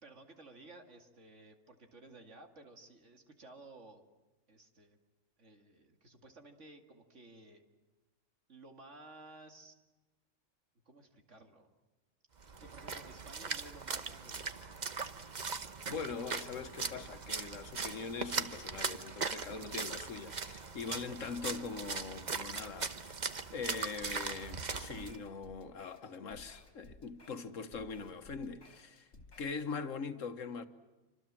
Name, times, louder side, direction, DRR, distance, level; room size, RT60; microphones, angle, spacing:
voice 1, 0.0-4.0 4.5-5.0 5.4-7.6 8.5-9.8 10.9-11.7 12.6-14.6 19.5-19.7 20.7-20.9 29.3-29.4, right 2 dB, 70° right, 2.7 m, -55 dB
Splash splatter, 12.4-25.2, right 4 dB, 40° right, 1.1 m, -40 dB
voice 2, 15.9-23.2 23.5-29.1 29.4-30.7, left 5 dB, 90° left, 1.7 m, -42 dB
sound 1, 24.0-29.6, left 3 dB, 60° left, 2.8 m, -58 dB
27.5 x 25.5 x 7.6 m
omnidirectional pair, 1.3 m